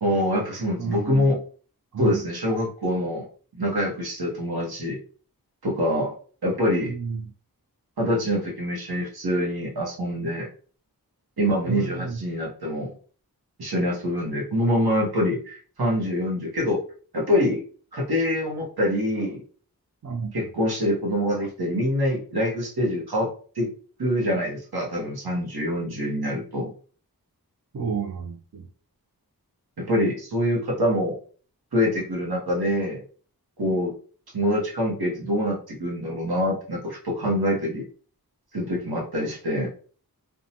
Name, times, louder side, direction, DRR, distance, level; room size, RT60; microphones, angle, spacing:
voice 1, 0.0-1.4 2.0-3.2 3.5-5.0 5.6-6.1 6.4-6.9 8.0-10.5 11.4-12.9 13.6-16.8 17.1-17.6 17.9-19.4 20.3-23.3 23.6-23.7 24.0-26.7 29.8-31.2 31.7-33.0 33.6-33.9 34.3-37.9 38.5-39.7, equal, 75° right, -2 dB, 1.0 m, -25 dB
voice 2, 0.8-1.4 1.9-2.2 6.8-7.3 11.7-12.2 20.0-20.3 27.7-28.7 29.8-29.9 33.6-33.8, right 5 dB, 50° right, 2 dB, 0.4 m, -31 dB
2.7 x 2.2 x 2.7 m, 0.42 s
wide cardioid pair, 45°, 38 cm